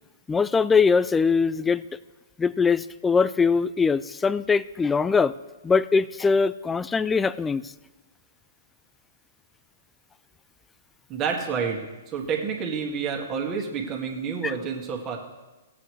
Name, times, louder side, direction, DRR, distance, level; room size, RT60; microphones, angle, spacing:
voice 1, 0.3-1.8 2.4-5.4 5.6-7.7 14.4-14.5, left 5 dB, 10° left, 17 dB, 0.3 m, -22 dB
voice 2, 11.1-15.2, right 6 dB, 30° right, 0 dB, 1.9 m, -29 dB
17.5 x 7.7 x 3.2 m, 1.1 s
hypercardioid pair, 125°, 0 cm